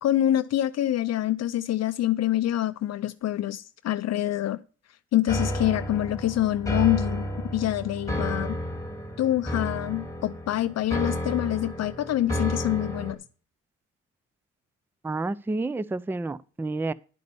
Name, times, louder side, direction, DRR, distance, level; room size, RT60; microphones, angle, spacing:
voice 1, 0.0-4.6 5.1-8.6 9.2-13.2, left 13 dB, 60° left, 0.5 m, -26 dB
sound 1, 5.3-13.1, equal, 10° left, 2.1 m, -31 dB
voice 2, 15.0-16.9, right 2 dB, 5° right, 0.4 m, -29 dB
11.0 x 5.2 x 6.8 m
cardioid pair, 90°, 30 cm